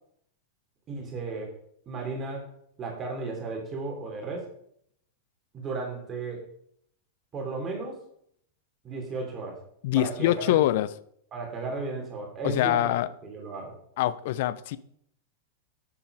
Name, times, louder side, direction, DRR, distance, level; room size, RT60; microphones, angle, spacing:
voice 1, 0.9-1.5 1.9-2.5 2.8-4.5 5.5-6.4 7.3-8.0 8.8-9.6 9.9-10.6 11.3-12.9 13.2-13.7, right 3 dB, 25° right, 1 dB, 3.7 m, -34 dB
voice 2, 9.8-10.9 12.4-13.1 14.0-14.8, left 14 dB, 50° left, 15 dB, 0.6 m, -24 dB
10.0 x 9.0 x 4.9 m, 0.69 s
figure-of-eight pair, 90°, 0 cm